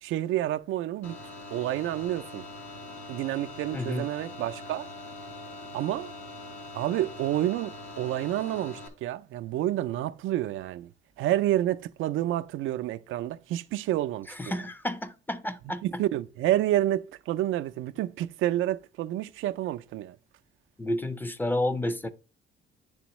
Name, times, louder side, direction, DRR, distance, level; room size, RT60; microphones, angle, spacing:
voice 1, 0.0-1.2 1.5-2.4 3.1-4.9 5.7-6.1 6.7-10.9 11.2-14.6 15.8-20.2, right 13 dB, 80° right, 0.4 m, -29 dB
sound 1, 1.0-8.9, left 2 dB, 75° left, 1.5 m, -43 dB
voice 2, 3.7-4.1 14.3-15.8 20.8-22.1, left 1 dB, 10° left, 0.5 m, -30 dB
10.0 x 3.5 x 3.0 m
cardioid pair, 90°, 20 cm